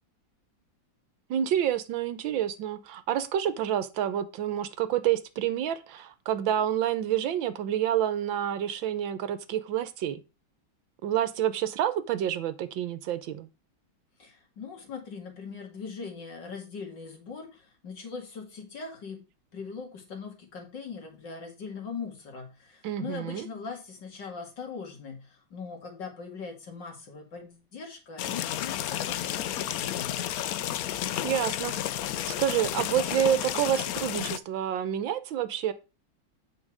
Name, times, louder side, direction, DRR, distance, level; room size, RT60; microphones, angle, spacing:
voice 1, 1.3-10.2 11.0-13.5 22.8-23.5 31.2-31.7 32.3-35.7, right 10 dB, 75° right, 13 dB, 1.5 m, -28 dB
voice 2, 14.2-19.2 19.5-30.1, left 5 dB, 60° left, 3 dB, 2.9 m, -41 dB
sound 1, 28.2-34.4, left 12 dB, 90° left, 0.7 m, -31 dB
8.6 x 5.5 x 4.8 m, 0.29 s
omnidirectional pair, 2.2 m